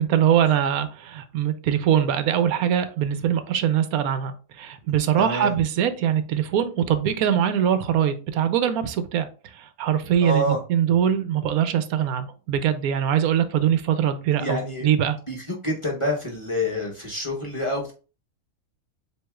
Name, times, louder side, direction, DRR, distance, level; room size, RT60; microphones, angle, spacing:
voice 1, 0.0-9.3 9.5-15.2, right 9 dB, 80° right, 11 dB, 1.0 m, -22 dB
voice 2, 5.2-5.5 10.2-10.6 14.4-14.9 15.3-17.9, equal, 25° left, -2 dB, 0.8 m, -27 dB
7.6 x 2.8 x 2.3 m, 0.35 s
omnidirectional pair, 1.5 m